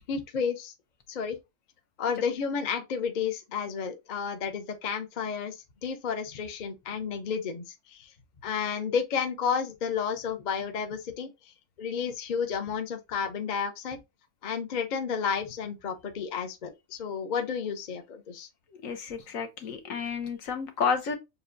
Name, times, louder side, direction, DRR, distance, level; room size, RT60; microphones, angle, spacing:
voice 1, 0.1-0.7 1.1-1.4 2.0-5.6 5.8-8.1 8.4-11.3 11.8-14.0 14.4-18.5, left 6 dB, 45° left, 0.6 m, -31 dB
voice 2, 18.8-21.2, left 6 dB, 70° left, 1.2 m, -31 dB
6.6 x 2.3 x 2.5 m
omnidirectional pair, 1.5 m